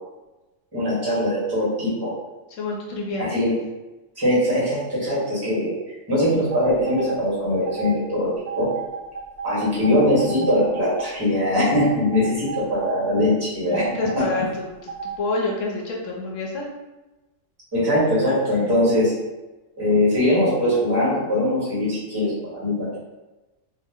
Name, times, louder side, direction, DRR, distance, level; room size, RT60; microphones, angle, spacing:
voice 1, 0.7-2.1 3.2-3.6 4.2-5.7 6.1-8.3 8.6-8.7 9.4-13.8 17.7-19.1 19.8-23.0, left 1 dB, 20° right, -7 dB, 1.0 m, -21 dB
voice 2, 2.6-3.3 13.6-14.9 15.2-16.7, left 2 dB, 70° left, -1 dB, 0.9 m, -28 dB
sound 1, 6.5-7.2 7.7-8.0 8.5-11.1 11.6-13.2 13.7-14.4 14.9-15.2, right 6 dB, 70° right, 0.9 m, -33 dB
2.5 x 2.0 x 3.4 m, 1.1 s
omnidirectional pair, 1.4 m